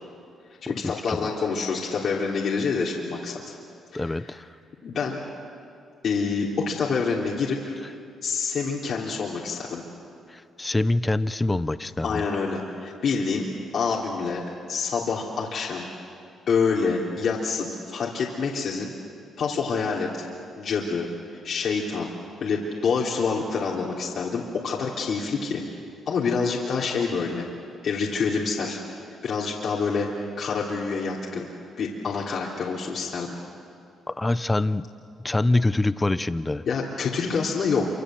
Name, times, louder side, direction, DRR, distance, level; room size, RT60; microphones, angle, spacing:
voice 1, 0.6-3.3 3.9-4.3 4.8-5.2 6.0-7.7 8.2-9.8 12.0-13.4 13.7-14.4 14.7-15.9 16.5-18.9 19.4-20.2 20.6-21.1 21.4-22.1 22.4-25.6 26.1-27.4 27.8-28.8 29.2-31.5 31.8-33.3 36.6-37.9, left 5 dB, 60° left, -4 dB, 3.3 m, -27 dB
voice 2, 3.9-4.4 10.3-12.2 34.2-34.8 35.2-36.6, left 2 dB, 15° left, 14 dB, 0.8 m, -24 dB
27.5 x 26.0 x 7.8 m, 2.5 s
cardioid pair, 90°, 0 cm